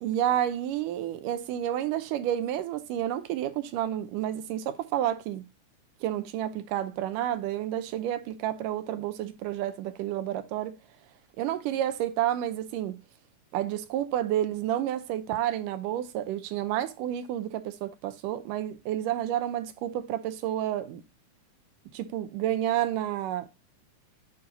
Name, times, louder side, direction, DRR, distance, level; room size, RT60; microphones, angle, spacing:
voice 1, 0.0-5.4 6.0-10.8 11.4-13.0 13.5-21.0 21.9-23.5, right 11 dB, 80° right, 2.3 m, -30 dB
9.1 x 4.1 x 4.0 m
omnidirectional pair, 3.8 m